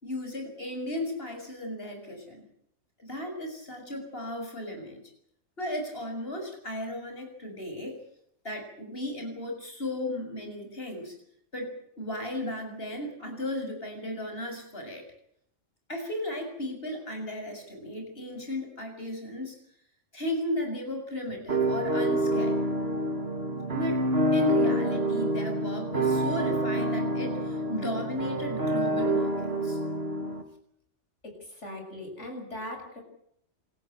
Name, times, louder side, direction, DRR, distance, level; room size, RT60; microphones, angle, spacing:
voice 1, 0.0-2.4 3.0-5.0 5.6-8.0 8.4-11.1 11.5-15.1 15.9-19.5 20.1-22.6 23.7-24.0 24.3-29.4 29.6-29.8, left 1 dB, 50° left, 4 dB, 7.3 m, -35 dB
sound 1, 21.5-30.4, right 1 dB, 55° right, 2.9 m, -27 dB
voice 2, 31.2-33.0, left 1 dB, 75° left, 3 dB, 7.7 m, -40 dB
28.0 x 14.5 x 9.1 m, 0.70 s
omnidirectional pair, 1.2 m